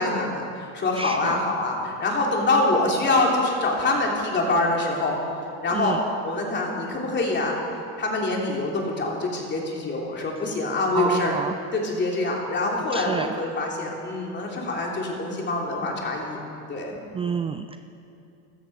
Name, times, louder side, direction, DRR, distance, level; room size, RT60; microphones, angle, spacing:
voice 1, 0.0-5.1 5.6-6.0 6.2-7.6 8.0-11.3 11.7-16.4 16.7-17.0, left 2 dB, 30° left, -1 dB, 3.2 m, -25 dB
voice 2, 0.9-1.4 5.7-6.0 10.9-11.5 12.9-13.3 17.1-17.8, right 6 dB, 15° right, 9 dB, 0.3 m, -28 dB
14.5 x 13.5 x 4.8 m, 2.6 s
supercardioid pair, 105°, 35 cm